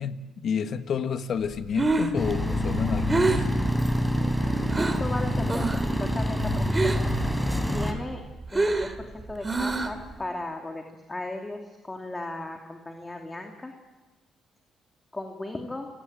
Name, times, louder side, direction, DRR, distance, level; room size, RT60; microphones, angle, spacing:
voice 1, 0.0-3.5, left 7 dB, 60° left, 9 dB, 1.6 m, -30 dB
Breathing, 1.5-5.1 5.5-5.9 6.2-7.2 7.6-10.1, right 3 dB, 25° right, 2.5 m, -27 dB
sound 1, 2.2-7.9, equal, ahead, 3.7 m, -26 dB
voice 2, 4.3-5.6 6.0-7.1 7.7-8.2 8.5-13.7 15.1-15.9, left 2 dB, 20° left, 3 dB, 2.8 m, -36 dB
27.0 x 18.5 x 9.1 m, 1.2 s
cardioid pair, 90°, 0 cm